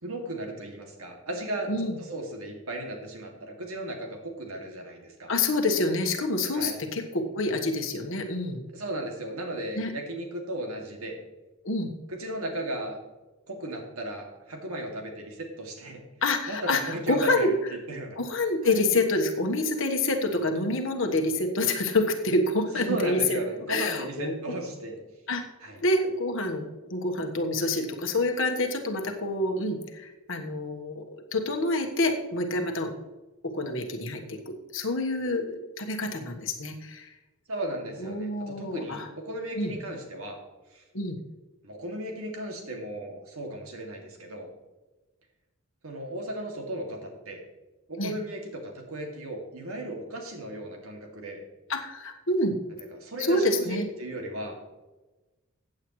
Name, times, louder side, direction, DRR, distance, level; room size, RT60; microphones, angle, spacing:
voice 1, 0.0-5.3 6.5-6.8 8.7-11.2 12.1-13.0 13.5-16.0 16.5-17.6 17.9-18.2 18.6-18.8 22.7-25.0 25.6-25.8 37.5-40.4 40.7-40.8 41.6-44.5 45.8-47.4 47.9-51.4 52.9-54.6, right 1 dB, 80° right, 2 dB, 2.4 m, -35 dB
voice 2, 1.7-2.0 5.3-8.6 9.7-9.9 11.6-11.9 16.2-17.5 18.2-23.4 23.7-24.3 25.3-25.4 25.8-31.0 31.3-32.9 33.4-37.1 38.0-39.1 39.6-39.7 40.9-41.2 48.0-48.1 51.7-52.5 53.2-53.9, left 2 dB, 60° left, 4 dB, 1.4 m, -27 dB
15.0 x 8.8 x 3.2 m, 1.1 s
head